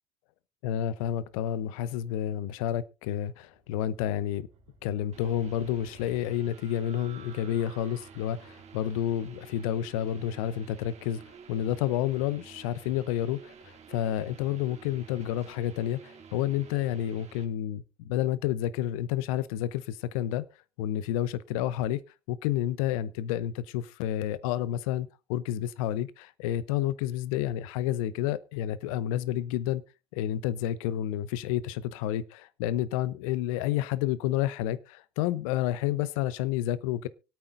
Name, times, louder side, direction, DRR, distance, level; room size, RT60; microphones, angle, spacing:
voice 1, 0.6-4.5 4.8-20.5 20.8-22.0 22.3-29.8 30.1-37.1, left 11 dB, 75° left, 0.7 m, -30 dB
sound 1, 3.2-15.1, right 6 dB, 70° right, 3.6 m, -58 dB
sound 2, 5.1-17.4, right 6 dB, 40° right, 2.3 m, -51 dB
24.5 x 8.8 x 2.6 m
hypercardioid pair, 65°, 18 cm